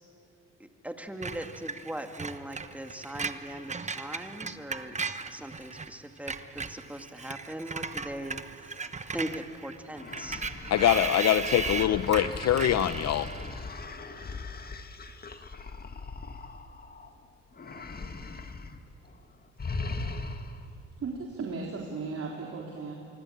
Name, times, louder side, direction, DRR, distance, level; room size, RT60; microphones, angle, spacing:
voice 1, 0.6-5.0 5.3-10.4, right 1 dB, 5° right, 5 dB, 2.1 m, -40 dB
Screech, 1.2-5.9 6.2-13.6, right 4 dB, 25° right, 1.1 m, -37 dB
sound 1, 10.0-17.1 17.5-18.8 19.1-19.2 19.6-20.7, left 3 dB, 30° left, 1.8 m, -39 dB
voice 2, 10.7-13.3, left 11 dB, 60° left, 12 dB, 0.8 m, -24 dB
voice 3, 21.0-22.9, right 4 dB, 50° right, -1 dB, 3.9 m, -36 dB
25.0 x 24.0 x 8.6 m, 2.3 s
cardioid pair, 90°, 30 cm